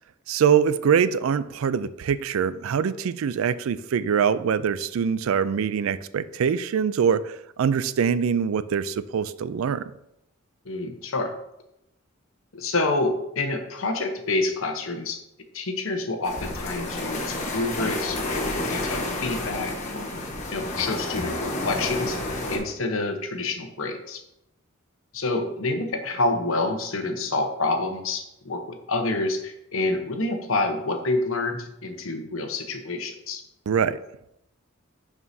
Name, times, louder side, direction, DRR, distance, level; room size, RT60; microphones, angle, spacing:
voice 1, 0.3-7.3 7.6-9.8 33.7-34.0, right 7 dB, 75° right, 15 dB, 0.4 m, -23 dB
voice 2, 10.6-11.3 12.5-15.2 15.5-20.1 20.5-22.2 22.5-24.2 25.1-33.4, left 2 dB, 70° left, 5 dB, 1.0 m, -28 dB
sound 1, 16.2-22.6, left 2 dB, 35° left, 1.3 m, -30 dB
11.0 x 4.8 x 2.7 m, 0.84 s
head